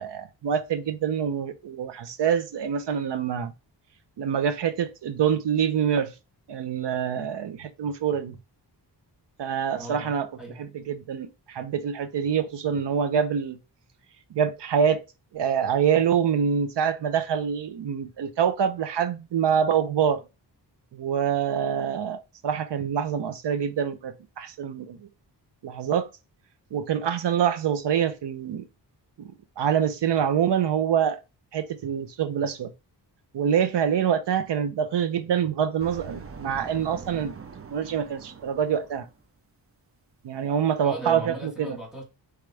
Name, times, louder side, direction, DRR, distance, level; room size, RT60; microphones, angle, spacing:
voice 1, 0.0-3.5 4.2-6.1 6.5-8.4 9.4-10.3 10.6-13.6 14.3-15.0 15.3-20.2 20.9-25.1 25.6-26.1 26.7-28.6 29.2-31.2 31.5-32.7 33.3-37.3 37.7-39.1 40.2-41.8, right 8 dB, 75° right, 0.8 m, -25 dB
voice 2, 9.8-10.6 40.8-42.0, right 2 dB, ahead, 1.6 m, -37 dB
sound 1, 35.8-39.2, right 5 dB, 35° right, 0.6 m, -43 dB
4.9 x 3.2 x 3.3 m
wide cardioid pair, 135°, 42 cm